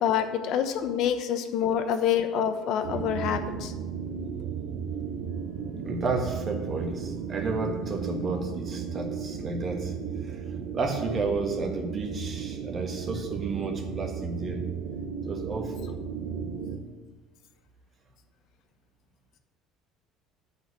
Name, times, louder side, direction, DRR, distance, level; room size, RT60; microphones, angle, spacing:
voice 1, 0.0-3.7, left 8 dB, 60° left, 8 dB, 1.0 m, -26 dB
sound 1, 2.8-16.8, right 7 dB, 80° right, 0.9 m, -34 dB
voice 2, 5.6-14.6 15.3-16.0, right 3 dB, 35° right, 4 dB, 1.6 m, -32 dB
8.8 x 5.7 x 8.0 m, 1.3 s
cardioid pair, 125°, 0 cm